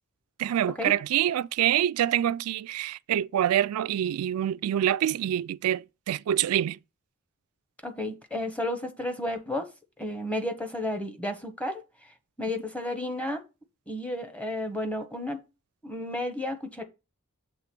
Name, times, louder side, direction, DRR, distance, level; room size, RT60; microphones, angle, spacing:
voice 1, 0.4-6.8, right 11 dB, 85° right, 0.3 m, -26 dB
voice 2, 7.8-9.7 10.0-11.8 12.4-13.4 13.9-15.4 15.8-16.8, left 1 dB, 5° left, 0.9 m, -32 dB
6.9 x 3.4 x 6.0 m
head